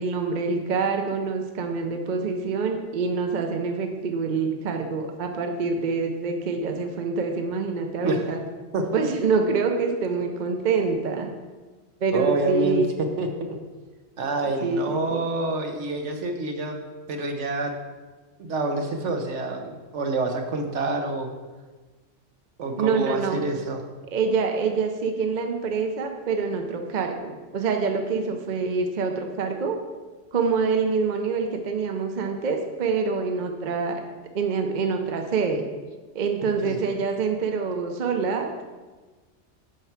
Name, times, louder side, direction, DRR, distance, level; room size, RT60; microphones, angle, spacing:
voice 1, 0.0-8.4 8.9-11.3 12.0-12.9 14.6-15.3 22.8-23.4 24.1-29.8 30.3-34.0 34.3-35.6 36.1-38.6, right 4 dB, 45° right, 4 dB, 0.7 m, -26 dB
voice 2, 12.1-13.5 14.2-16.8 17.1-17.7 18.4-21.3 22.6-23.8 36.6-36.8, right 2 dB, 70° right, 4 dB, 1.2 m, -27 dB
8.2 x 4.6 x 5.8 m, 1.3 s
omnidirectional pair, 1.3 m